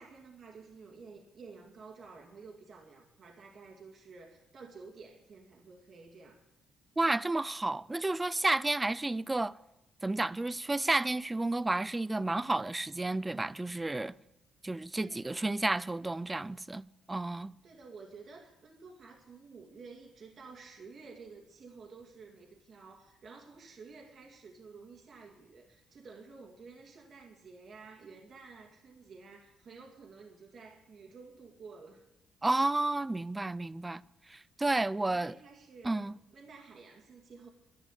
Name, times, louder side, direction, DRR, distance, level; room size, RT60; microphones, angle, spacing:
voice 1, 0.0-6.4 15.0-15.5 17.6-32.0 35.0-35.9 36.3-37.5, right 4 dB, 55° right, 2.2 m, -52 dB
voice 2, 7.0-9.6 10.0-14.1 14.6-17.5 32.4-34.0 34.3-35.4 35.8-36.2, right 2 dB, 15° right, 0.4 m, -31 dB
11.0 x 11.0 x 8.1 m
cardioid pair, 90°, 0 cm